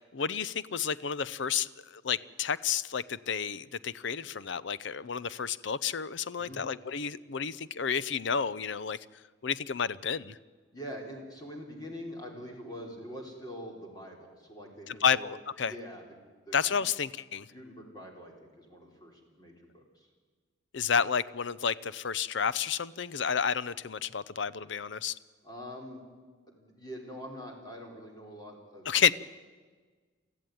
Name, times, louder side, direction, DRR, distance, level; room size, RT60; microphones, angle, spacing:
voice 1, 0.1-9.0 9.4-10.4 14.9-15.7 16.5-17.5 20.7-25.1 28.9-29.1, left 7 dB, 65° left, 18 dB, 0.6 m, -30 dB
voice 2, 10.7-15.3 15.6-16.6 16.8-16.9 17.5-20.1 25.4-26.0 26.5-28.9, equal, 20° left, 0 dB, 3.7 m, -44 dB
24.0 x 14.5 x 9.3 m, 1.4 s
head